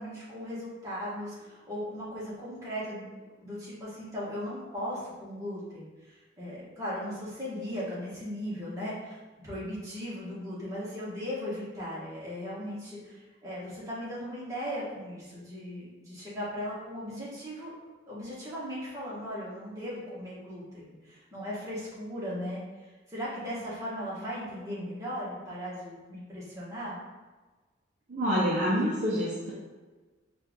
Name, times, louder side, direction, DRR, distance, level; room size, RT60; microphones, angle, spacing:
voice 1, 0.0-17.7 18.1-27.0, equal, 15° right, -8 dB, 1.2 m, -38 dB
voice 2, 28.1-29.5, equal, 40° right, -7 dB, 0.7 m, -27 dB
4.4 x 2.5 x 3.5 m, 1.3 s
head